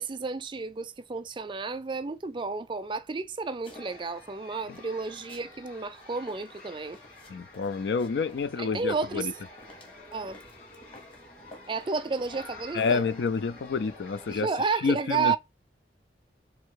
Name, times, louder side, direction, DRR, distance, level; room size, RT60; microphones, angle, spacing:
voice 1, 0.0-7.0 8.6-9.3 10.1-10.4 11.7-13.0 14.3-15.4, right 4 dB, 25° right, 0.4 m, -31 dB
sound 1, 3.6-4.2 4.7-5.5 5.8-8.5 9.1-11.2 11.5-12.5, left 2 dB, 30° left, 1.2 m, -53 dB
sound 2, 3.7-14.4, left 2 dB, 45° left, 2.7 m, -49 dB
voice 2, 7.3-9.3 12.7-14.5 14.8-15.4, left 4 dB, 70° left, 0.4 m, -28 dB
4.2 x 2.7 x 4.6 m
head